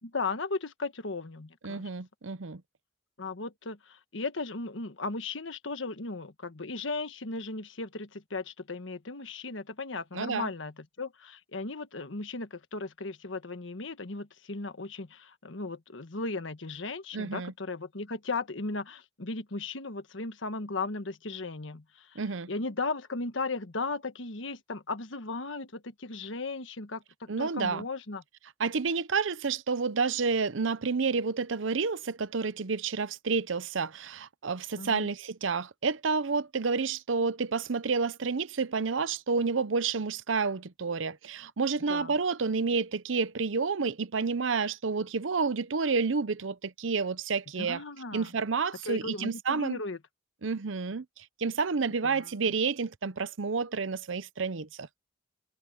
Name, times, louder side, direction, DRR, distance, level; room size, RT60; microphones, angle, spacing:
voice 1, 0.0-1.9 3.2-28.2 34.8-35.1 41.9-42.1 47.6-48.3 48.8-50.0 52.0-52.5, left 3 dB, 80° left, 1.4 m, -36 dB
voice 2, 1.6-2.6 10.1-10.5 17.1-17.5 22.2-22.5 27.3-27.8 28.6-47.8 48.1-49.8 50.4-51.0 51.4-54.9, right 4 dB, 85° right, 0.7 m, -30 dB
head